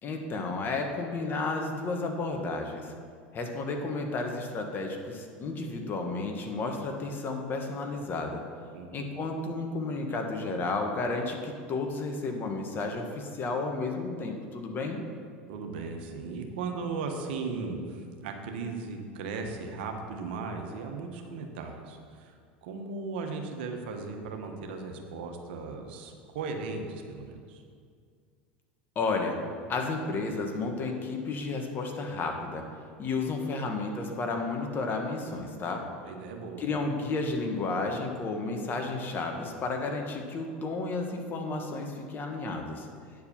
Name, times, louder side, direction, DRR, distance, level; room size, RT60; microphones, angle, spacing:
voice 1, 0.0-2.9 3.3-8.4 8.9-15.0 28.9-29.4 29.7-32.6 33.0-35.9 36.6-42.9, left 3 dB, 40° left, 3 dB, 1.4 m, -32 dB
voice 2, 15.5-27.6 36.0-36.6, right 4 dB, 75° right, 3 dB, 1.2 m, -37 dB
9.3 x 4.7 x 7.2 m, 2.1 s
hypercardioid pair, 95°, 6 cm